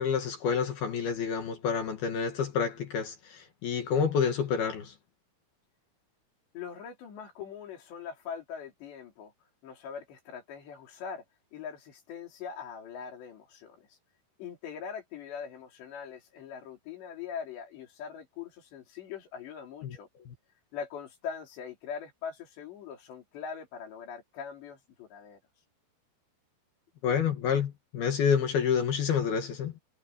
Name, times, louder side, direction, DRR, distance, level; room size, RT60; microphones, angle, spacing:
voice 1, 0.0-4.9 19.8-20.0 20.3-20.4 27.0-29.7, left 7 dB, 65° left, 3.8 m, -28 dB
voice 2, 6.5-9.3 9.6-11.2 11.5-13.9 14.4-20.1 20.7-25.4, left 7 dB, 85° left, 5.8 m, -42 dB
omnidirectional pair, 4.9 m